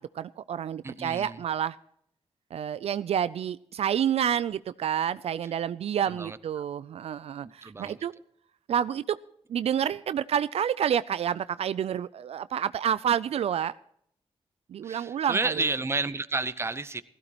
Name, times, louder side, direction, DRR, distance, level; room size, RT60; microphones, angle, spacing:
voice 1, 0.2-1.8 2.5-8.1 8.7-9.2 9.5-13.7 14.7-15.6, right 9 dB, 70° right, 16 dB, 0.4 m, -29 dB
voice 2, 0.8-1.4 6.1-6.4 7.6-8.0 14.8-17.0, right 3 dB, 25° right, 14 dB, 0.7 m, -31 dB
16.5 x 15.0 x 3.0 m, 0.69 s
cardioid pair, 95°, 11 cm